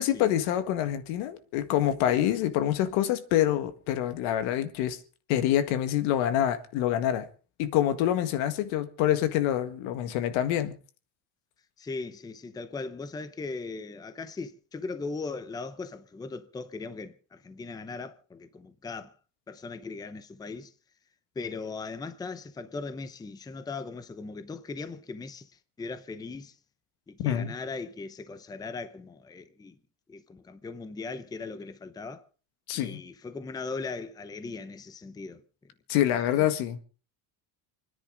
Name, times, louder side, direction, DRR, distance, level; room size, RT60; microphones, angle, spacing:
voice 1, 0.0-5.0 5.3-7.3 7.6-10.7 27.2-27.5 32.7-33.0 35.9-36.8, left 11 dB, 85° left, 1.9 m, -26 dB
voice 2, 11.8-19.1 19.5-20.7 21.4-25.5 25.8-26.6 27.1-29.8 30.1-32.3 32.7-35.4 36.1-36.6, left 4 dB, 10° left, 0.6 m, -39 dB
29.0 x 10.0 x 3.9 m
cardioid pair, 165°, 47 cm